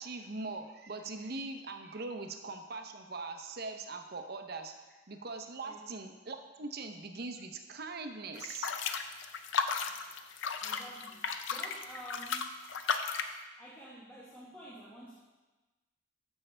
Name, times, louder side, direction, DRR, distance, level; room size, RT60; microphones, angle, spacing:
voice 1, 0.0-4.7 5.1-8.7, right 3 dB, 50° right, 6 dB, 0.7 m, -41 dB
sound 1, 8.4-13.4, left 5 dB, 65° left, 0.5 m, -35 dB
voice 2, 10.6-11.2 11.5-12.6 13.6-15.2, right 1 dB, 10° left, -8 dB, 1.1 m, -49 dB
14.0 x 5.5 x 3.3 m, 1.2 s
head